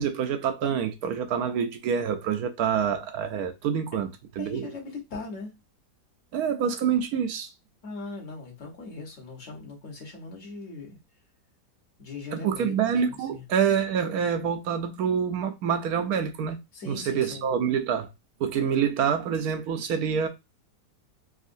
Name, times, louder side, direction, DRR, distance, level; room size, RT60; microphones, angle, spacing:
voice 1, 0.0-4.1 4.4-4.7 6.3-7.5 12.3-16.6 16.9-18.1 18.4-20.3, right 7 dB, 70° right, 1.0 m, -26 dB
voice 2, 4.4-5.5 7.8-11.0 12.0-13.4 16.7-17.5, left 3 dB, 50° left, 1.4 m, -40 dB
3.6 x 2.4 x 2.5 m
omnidirectional pair, 1.8 m